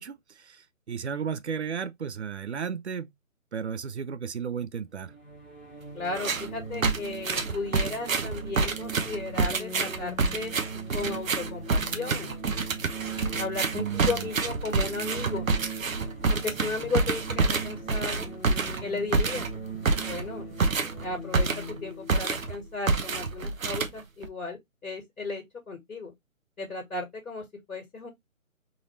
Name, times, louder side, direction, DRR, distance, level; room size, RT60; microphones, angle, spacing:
voice 1, 0.0-3.1 3.5-5.1 13.7-14.3, right 7 dB, 55° right, 0.5 m, -34 dB
sound 1, 5.0-23.6, right 3 dB, 5° right, 0.9 m, -40 dB
voice 2, 5.9-10.5 10.9-12.3 13.4-15.5 16.3-18.3 18.8-19.5 20.1-20.5 21.0-26.1 26.6-28.1, left 3 dB, 85° left, 1.7 m, -35 dB
sound 2, 6.1-6.5 6.8-21.8 22.1-22.6 22.9-24.3, right 4 dB, 70° right, 0.9 m, -28 dB
3.9 x 2.6 x 3.0 m
hypercardioid pair, 165°, 41 cm